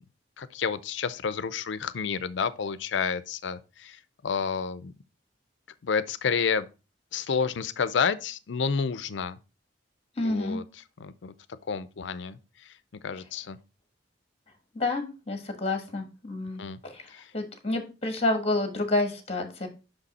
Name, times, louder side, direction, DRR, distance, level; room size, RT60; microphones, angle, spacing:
voice 1, 0.4-4.9 5.8-6.7 7.1-9.4 10.2-10.6 11.0-11.3 11.7-12.7 13.0-13.6 16.6-16.8 17.1-17.3, left 6 dB, 75° left, 0.5 m, -30 dB
voice 2, 10.2-10.6 14.7-19.7, left 2 dB, 35° left, 1.4 m, -29 dB
5.8 x 5.4 x 4.1 m
head